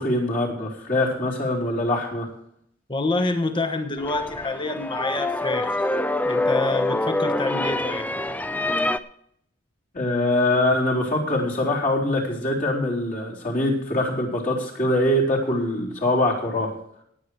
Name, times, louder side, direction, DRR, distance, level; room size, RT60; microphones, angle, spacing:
voice 1, 0.0-2.3 9.9-16.7, left 1 dB, 45° left, -3 dB, 4.0 m, -23 dB
voice 2, 2.9-5.8 6.2-8.1, left 2 dB, 25° left, 7 dB, 1.2 m, -27 dB
sound 1, 4.0-9.0, left 2 dB, 10° left, 0.4 m, -25 dB
18.0 x 8.1 x 4.6 m, 0.70 s
head